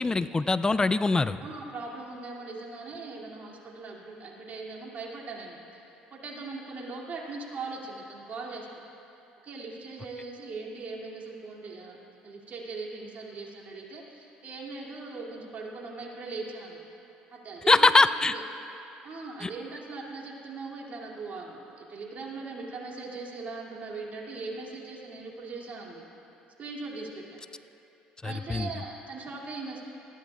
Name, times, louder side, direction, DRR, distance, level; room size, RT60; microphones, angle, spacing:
voice 1, 0.0-1.4 17.7-18.3 19.4-19.5 28.2-28.7, left 3 dB, 20° left, 14 dB, 0.4 m, -22 dB
voice 2, 1.4-5.6 6.1-8.7 9.4-12.0 12.2-16.8 17.3-17.9 18.2-18.4 19.0-26.0 26.6-27.4 28.2-29.8, right 3 dB, 45° right, -3 dB, 2.6 m, -40 dB
19.5 x 13.5 x 2.4 m, 2.8 s
hypercardioid pair, 65°, 4 cm